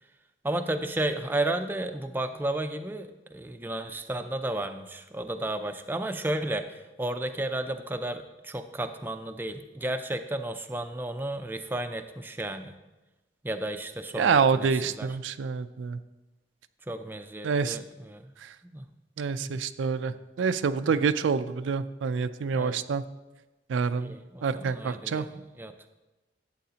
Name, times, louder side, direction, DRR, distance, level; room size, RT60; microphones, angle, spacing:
voice 1, 0.4-12.8 13.4-15.1 16.9-18.3 18.6-18.8 19.4-19.6 22.5-22.8 24.0-25.7, right 1 dB, 10° right, 7 dB, 0.4 m, -33 dB
voice 2, 14.1-16.0 17.4-17.8 18.4-18.5 19.2-23.0 23.7-24.1 24.4-25.3, right 5 dB, 85° right, 12 dB, 0.4 m, -27 dB
11.5 x 8.2 x 2.8 m, 1.1 s
head